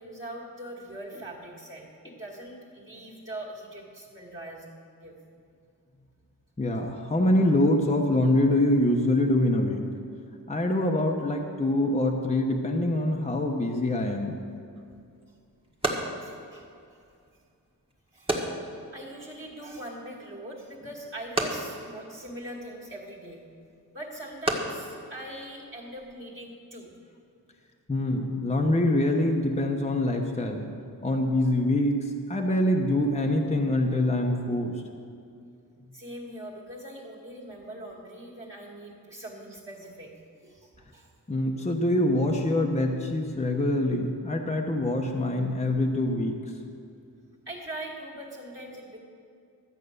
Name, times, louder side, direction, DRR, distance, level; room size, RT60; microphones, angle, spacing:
voice 1, 0.0-4.7 5.0-5.1 16.2-16.7 18.1-18.5 18.9-23.4 23.9-26.9 35.9-40.1 40.4-41.1 47.5-49.0, right 1 dB, 35° right, -5 dB, 2.2 m, -41 dB
voice 2, 6.6-9.8 10.5-14.4 27.9-30.7 31.0-34.7 41.3-46.4, left 1 dB, 20° left, 1 dB, 1.1 m, -25 dB
sound 1, 14.8-26.1, right 1 dB, 15° right, 1.7 m, -36 dB
12.5 x 8.3 x 6.7 m, 2.4 s
wide cardioid pair, 100°, 36 cm